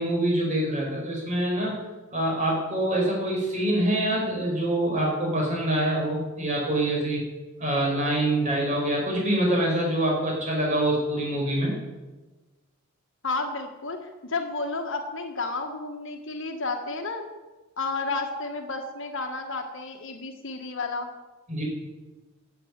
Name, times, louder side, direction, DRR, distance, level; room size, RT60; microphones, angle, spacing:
voice 1, 0.0-1.8 2.1-7.2 7.6-11.7 21.5-21.6, right 1 dB, 35° right, -2 dB, 5.0 m, -25 dB
voice 2, 13.2-17.2 17.8-21.1, left 3 dB, 60° left, 4 dB, 1.6 m, -31 dB
11.0 x 8.2 x 8.8 m, 1.2 s
head